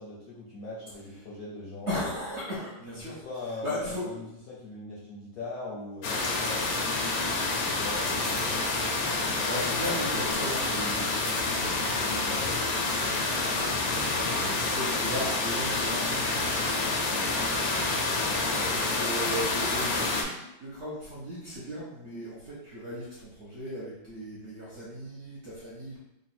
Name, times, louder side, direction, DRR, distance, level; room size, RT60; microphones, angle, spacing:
voice 1, 0.0-1.9 3.0-8.6 12.0-12.6 18.5-18.7, left 2 dB, 60° left, -5 dB, 1.0 m, -41 dB
voice 2, 1.9-3.2 3.6-4.3 9.3-12.3 12.6-26.0, equal, 50° right, -8 dB, 0.8 m, -38 dB
sound 1, 6.0-20.2, left 3 dB, 80° left, 1.4 m, -28 dB
3.7 x 2.2 x 4.2 m, 0.88 s
omnidirectional pair, 2.1 m